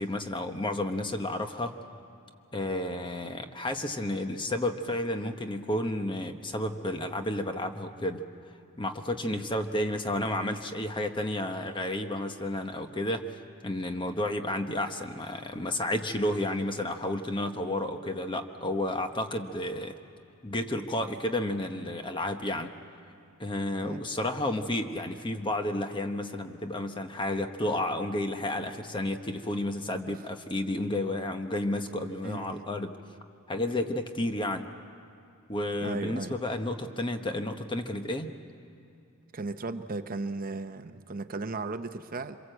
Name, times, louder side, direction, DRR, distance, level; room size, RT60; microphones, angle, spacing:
voice 1, 0.0-1.7 2.5-8.2 8.8-13.2 13.6-19.9 20.4-22.7 23.4-33.0 33.5-34.7 35.5-38.3, left 1 dB, 25° left, 6 dB, 1.1 m, -31 dB
voice 2, 32.2-32.6 35.8-36.4 39.3-42.4, right 3 dB, 45° right, 9 dB, 0.7 m, -36 dB
26.0 x 23.0 x 7.9 m, 2.5 s
head